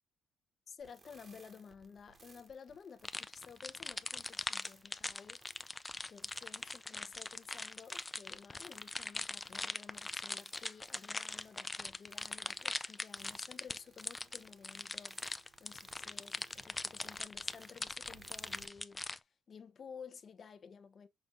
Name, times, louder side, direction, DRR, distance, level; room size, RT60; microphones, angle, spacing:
voice 1, 0.7-5.4 6.1-15.3 15.6-21.1, left 6 dB, 50° left, 0.7 m, -53 dB
sound 1, 0.8-18.7, right 4 dB, 35° right, 1.1 m, -64 dB
sound 2, 3.0-19.2, left 2 dB, 20° left, 0.3 m, -41 dB
5.9 x 2.5 x 2.9 m
cardioid pair, 90°, 0 cm